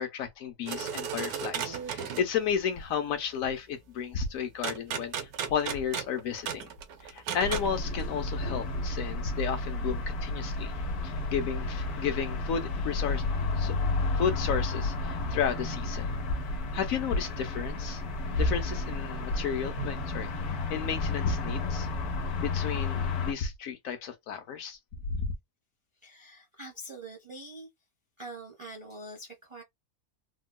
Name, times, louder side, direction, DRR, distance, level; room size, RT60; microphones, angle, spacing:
voice 1, 0.0-5.1 5.5-6.7 7.0-10.7 11.0-13.2 13.6-13.8 14.2-16.1 16.7-18.0 18.4-20.3 20.7-21.9 22.4-24.8 25.1-25.3, left 7 dB, 70° left, 1.1 m, -33 dB
sound 1, 0.7-2.3 4.6-7.8, right 8 dB, 90° right, 1.2 m, -35 dB
sound 2, 7.4-23.3, left 3 dB, 85° left, 1.3 m, -31 dB
voice 2, 26.0-27.7 28.2-29.6, right 1 dB, 30° right, 0.6 m, -44 dB
3.6 x 2.2 x 2.2 m
omnidirectional pair, 1.6 m